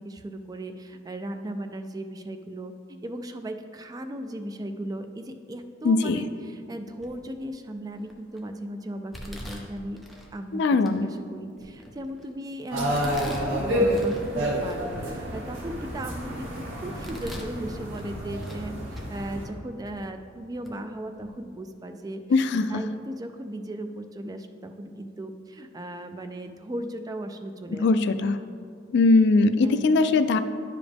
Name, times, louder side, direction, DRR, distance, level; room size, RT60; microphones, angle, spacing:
voice 1, 0.0-2.7 3.0-10.0 10.3-22.2 22.5-28.2 29.6-29.8, right 1 dB, 20° right, 7 dB, 0.3 m, -37 dB
voice 2, 5.8-6.2 10.5-11.1 22.3-22.8 27.8-28.4 28.9-30.4, left 3 dB, 60° left, 11 dB, 0.3 m, -20 dB
Domestic sounds home sounds, 7.0-7.4 8.0-8.4 9.1-10.3 10.9-11.0 11.5-12.3 12.9-14.3 14.7-14.8 15.4-16.3 16.8-17.6 17.9-18.7 18.9-19.1 19.9-20.0 20.6-20.8 21.1-21.3, equal, ahead, 0.7 m, -43 dB
sound 1, 12.7-19.5, equal, 90° right, 1.4 m, -29 dB
10.0 x 5.0 x 3.5 m, 2.3 s
head